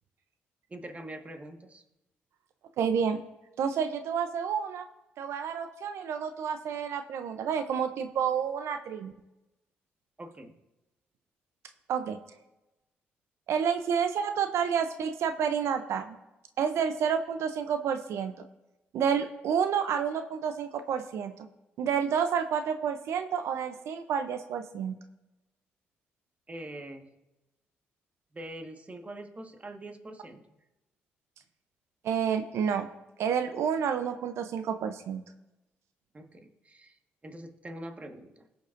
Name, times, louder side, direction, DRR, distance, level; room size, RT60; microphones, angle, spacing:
voice 1, 0.7-1.8 10.2-10.6 26.5-27.1 28.3-30.6 36.1-38.5, right 1 dB, 30° right, 3 dB, 1.6 m, -44 dB
voice 2, 2.8-3.2 3.6-4.9 5.2-9.1 11.9-12.2 13.5-16.2 16.6-18.3 18.9-21.3 21.8-25.0 32.0-32.9 33.2-35.2, right 7 dB, 70° right, 9 dB, 0.6 m, -29 dB
20.0 x 6.9 x 2.6 m, 0.99 s
supercardioid pair, 55°, 5 cm